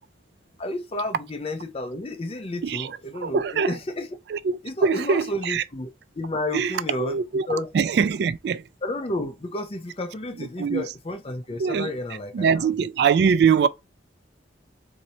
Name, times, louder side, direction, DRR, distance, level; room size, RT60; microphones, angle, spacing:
voice 1, 0.6-4.1 4.6-5.9 6.2-7.2 7.5-7.7 8.8-12.7, left 1 dB, 30° left, 0.6 m, -31 dB
voice 2, 2.6-3.8 4.3-5.6 6.5-8.7 10.4-10.8 11.6-11.9 12.3-13.7, right 6 dB, 60° right, 0.3 m, -23 dB
2.8 x 2.6 x 4.2 m
head